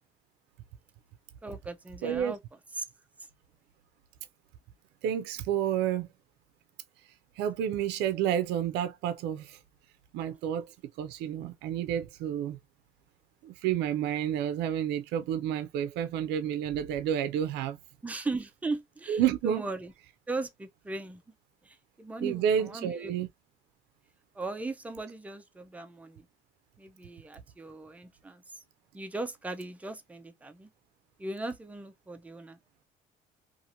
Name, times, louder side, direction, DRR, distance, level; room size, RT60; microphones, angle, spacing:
voice 1, 1.4-2.4 2.7-2.8 18.0-19.9 20.3-21.2 21.6-23.1 24.3-26.3 26.8-28.6 28.9-30.7 31.2-32.6, right 2 dB, 10° right, 0.4 m, -38 dB
voice 2, 2.0-2.3 5.0-6.1 7.4-9.6 10.1-10.7 11.0-12.6 13.4-17.8 19.1-19.7 22.2-23.3, right 9 dB, 85° right, 0.4 m, -30 dB
2.8 x 2.5 x 2.5 m
cardioid pair, 110°, 17 cm